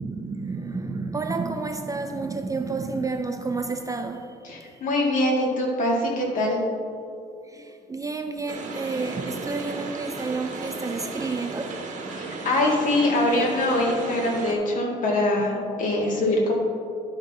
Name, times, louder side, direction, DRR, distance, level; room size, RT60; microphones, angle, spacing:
voice 1, 0.0-4.8 7.4-11.8, right 3 dB, 20° right, 0.4 m, -30 dB
voice 2, 4.4-6.6 12.1-16.5, left 1 dB, 50° left, 2.1 m, -23 dB
sound 1, 8.5-14.5, right 3 dB, 50° right, 1.3 m, -35 dB
12.0 x 5.7 x 3.6 m
cardioid pair, 110°, 17 cm